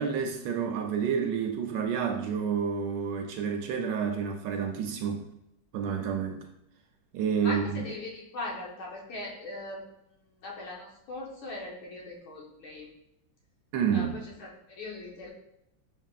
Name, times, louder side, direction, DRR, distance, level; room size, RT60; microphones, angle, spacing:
voice 1, 0.0-5.3 5.7-6.5 7.1-7.8 13.7-14.2, right 7 dB, 75° right, 3 dB, 1.1 m, -29 dB
voice 2, 7.4-9.8 10.4-12.9 13.9-15.3, left 2 dB, 85° left, -2 dB, 1.9 m, -40 dB
6.4 x 3.5 x 2.4 m, 0.81 s
omnidirectional pair, 2.2 m